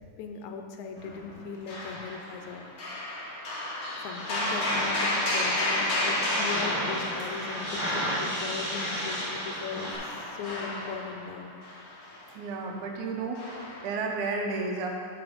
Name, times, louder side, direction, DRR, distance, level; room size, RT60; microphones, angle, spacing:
voice 1, 0.2-2.7 4.0-11.5, left 5 dB, 80° left, 4 dB, 1.9 m, -39 dB
sound 1, 1.0-1.4 1.7-8.1 9.2-12.3 13.3-13.8, left 1 dB, 60° left, 0.9 m, -32 dB
sound 2, 4.1-10.0, equal, 15° left, 1.0 m, -33 dB
voice 2, 12.3-14.9, right 3 dB, 80° right, 1 dB, 2.2 m, -32 dB
7.1 x 5.9 x 5.0 m, 2.3 s
omnidirectional pair, 3.5 m